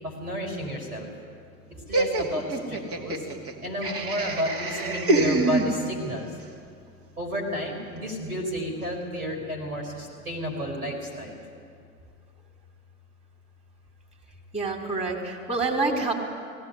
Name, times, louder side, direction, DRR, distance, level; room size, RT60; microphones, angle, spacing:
voice 1, 0.0-1.1 1.9-3.2 3.6-6.3 7.2-11.4, equal, 85° right, 1 dB, 5.5 m, -31 dB
Laughter, 1.9-6.2, right 2 dB, 30° right, 2.5 m, -26 dB
voice 2, 14.5-16.1, right 3 dB, 15° right, -1 dB, 4.7 m, -27 dB
18.5 x 17.5 x 9.8 m, 2.2 s
hypercardioid pair, 80°, 44 cm